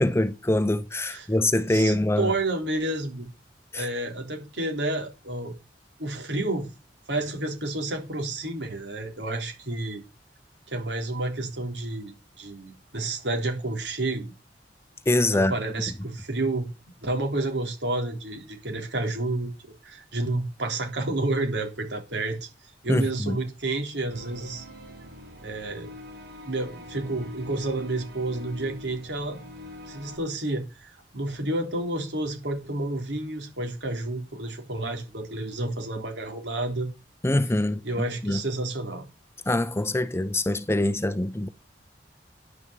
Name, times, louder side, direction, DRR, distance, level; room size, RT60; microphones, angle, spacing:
voice 1, 0.0-2.3 3.7-3.9 15.1-15.5 22.9-23.4 37.2-37.8 38.2-38.4 39.5-41.5, left 1 dB, 15° left, 0.6 m, -24 dB
voice 2, 1.7-3.3 3.8-5.5 6.0-6.7 7.1-10.0 10.7-14.3 15.3-16.7 17.0-19.5 19.8-22.5 22.8-24.7 25.4-25.9 26.4-29.4 29.9-36.9 37.8-39.1, right 2 dB, 85° right, 3.6 m, -30 dB
sound 1, 24.1-30.2, left 1 dB, 65° right, 4.6 m, -44 dB
10.5 x 6.2 x 8.2 m
head